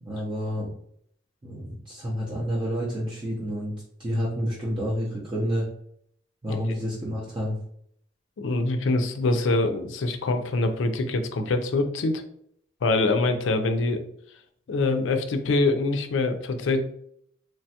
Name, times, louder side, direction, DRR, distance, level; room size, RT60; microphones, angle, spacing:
voice 1, 0.0-0.7 1.4-3.7 4.0-5.7 6.4-7.6, equal, 25° right, -6 dB, 0.5 m, -29 dB
voice 2, 8.4-12.2 12.8-14.0 14.7-16.9, left 2 dB, 70° left, 7 dB, 0.4 m, -24 dB
3.1 x 2.2 x 2.7 m, 0.67 s
head